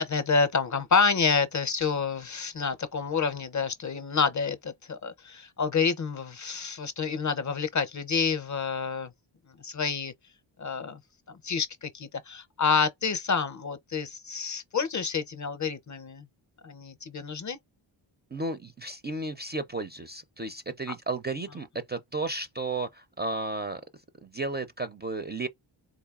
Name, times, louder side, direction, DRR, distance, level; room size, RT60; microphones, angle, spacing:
voice 1, 0.0-9.1 9.6-10.1 10.6-11.0 11.3-16.2 16.6-17.6, left 5 dB, 40° left, 0.6 m, -28 dB
voice 2, 18.3-23.8 24.2-25.5, right 3 dB, 20° right, 0.4 m, -33 dB
4.0 x 2.6 x 2.3 m
cardioid pair, 70°, 48 cm